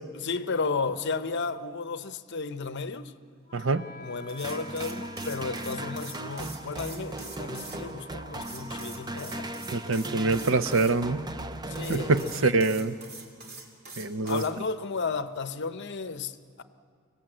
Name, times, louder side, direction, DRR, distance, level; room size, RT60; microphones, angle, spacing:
voice 1, 0.1-3.1 4.0-9.6 11.7-12.6 14.2-16.6, left 4 dB, 55° left, 0.8 m, -33 dB
Wind instrument woodwind instrument, 3.5-13.5, equal, 20° left, 4.7 m, -51 dB
voice 2, 3.5-3.8 9.7-11.2 11.9-12.9 14.0-14.4, right 3 dB, 65° right, 0.7 m, -25 dB
sound 1, 4.3-7.8 8.4-10.9 11.7-14.5, right 3 dB, 45° right, 2.7 m, -44 dB
sound 2, 4.4-12.9, right 2 dB, 20° right, 0.6 m, -38 dB
25.0 x 17.5 x 7.8 m
head